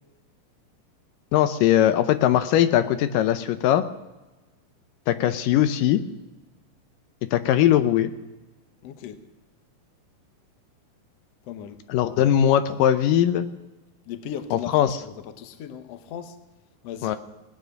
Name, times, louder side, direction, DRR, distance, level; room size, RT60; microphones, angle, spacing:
voice 1, 1.3-3.8 5.1-6.0 7.3-8.1 11.9-13.5 14.5-15.0 17.0-17.2, left 11 dB, 80° left, 11 dB, 2.3 m, -20 dB
voice 2, 8.8-9.2 11.5-11.8 14.1-16.4 16.8-17.2, left 9 dB, 65° left, 8 dB, 1.7 m, -37 dB
19.0 x 9.4 x 6.4 m, 1.1 s
omnidirectional pair, 3.9 m